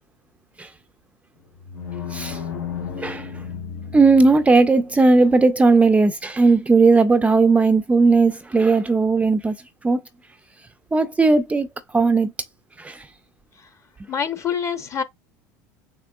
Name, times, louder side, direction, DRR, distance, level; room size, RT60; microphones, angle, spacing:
sound 1, 1.4-4.6, left 7 dB, 85° left, 1.6 m, -33 dB
voice 1, 3.9-9.6 9.8-10.0 10.9-11.7 11.9-12.3 12.8-13.0, right 3 dB, 15° right, 0.3 m, -17 dB
voice 2, 14.1-15.0, left 7 dB, 30° left, 0.7 m, -25 dB
6.7 x 2.3 x 2.3 m
hypercardioid pair, 90°, 10 cm